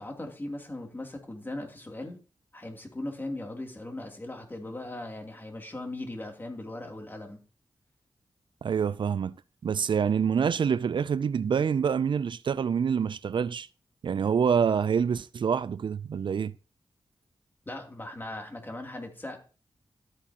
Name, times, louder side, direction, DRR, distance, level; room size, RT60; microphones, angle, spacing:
voice 1, 0.0-2.2 2.5-7.4 17.7-19.4, left 1 dB, 25° left, 2.9 m, -38 dB
voice 2, 8.6-9.4 9.6-13.7 14.0-16.5, right 7 dB, 65° right, 0.4 m, -26 dB
13.0 x 8.5 x 2.9 m
wide cardioid pair, 70°, 9 cm